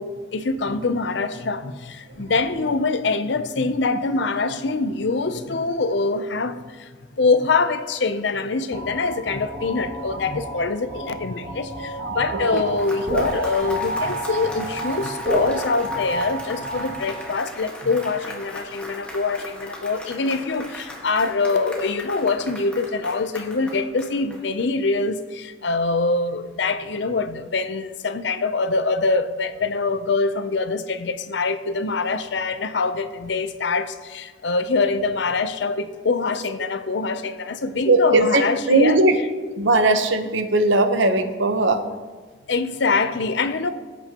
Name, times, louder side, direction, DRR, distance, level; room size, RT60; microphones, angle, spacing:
voice 1, 0.0-39.0 42.5-43.7, left 3 dB, 65° left, 0.6 m, -24 dB
sound 1, 8.7-17.4, right 1 dB, 25° right, 2.5 m, -30 dB
voice 2, 12.3-12.6 37.9-39.1 39.6-41.8, right 2 dB, 75° right, 0.9 m, -19 dB
Applause, 12.4-24.9, left 1 dB, 5° left, 1.6 m, -38 dB
18.0 x 8.3 x 3.0 m
head